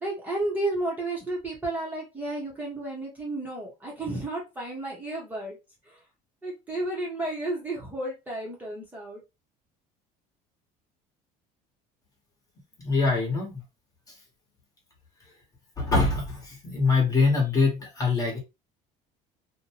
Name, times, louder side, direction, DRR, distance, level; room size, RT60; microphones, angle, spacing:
voice 1, 0.0-5.6 5.9-6.0 6.4-9.2, right 2 dB, 10° right, 0.8 m, -32 dB
voice 2, 12.8-13.6 14.1-14.2 15.8-18.4, left 4 dB, 25° left, 1.0 m, -24 dB
2.6 x 2.2 x 2.8 m
cardioid pair, 145°, 16 cm